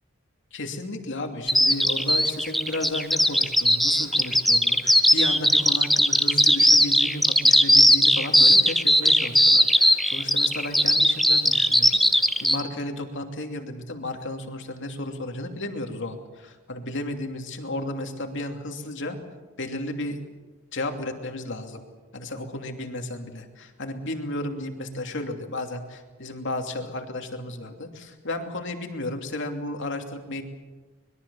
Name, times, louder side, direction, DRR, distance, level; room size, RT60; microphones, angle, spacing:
voice 1, 0.5-19.2 19.6-20.2 20.7-21.8 22.1-30.4, left 1 dB, 60° left, 4 dB, 2.8 m, -33 dB
Bird vocalization bird call bird song, 1.5-12.6, equal, ahead, 1.0 m, -18 dB
25.0 x 21.5 x 7.1 m, 1.3 s
head